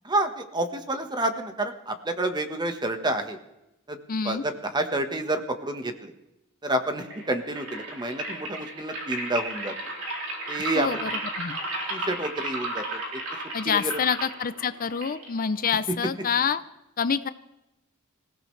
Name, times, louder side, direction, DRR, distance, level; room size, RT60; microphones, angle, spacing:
voice 1, 0.0-3.4 3.9-4.0 4.2-6.1 6.6-9.7 10.5-11.1 11.9-13.0 13.6-13.8, right 1 dB, 20° right, 7 dB, 1.3 m, -29 dB
voice 2, 4.1-4.4 10.7-11.1 11.3-11.6 13.5-16.6 17.0-17.3, left 6 dB, 40° left, 13 dB, 0.5 m, -27 dB
sound 1, 7.0-16.0, right 1 dB, 90° right, 4.4 m, -34 dB
26.0 x 16.0 x 3.3 m, 0.92 s
head